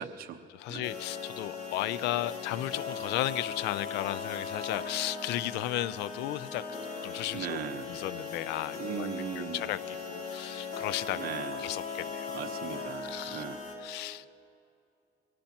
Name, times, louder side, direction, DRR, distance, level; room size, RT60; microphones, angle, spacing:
voice 1, 0.0-0.4 0.7-0.8 7.3-7.9 8.8-9.7 11.1-11.7 12.3-13.6, right 9 dB, 65° right, 6 dB, 1.0 m, -38 dB
voice 2, 0.5-6.6 7.0-7.6 7.9-9.1 9.4-11.3 11.6-12.4 13.0-13.4 13.8-14.3, left 15 dB, 85° left, 17 dB, 0.5 m, -34 dB
sound 1, 0.8-13.8, left 5 dB, 60° left, 3.4 m, -39 dB
23.0 x 17.0 x 2.9 m, 2.4 s
cardioid pair, 110°, 17 cm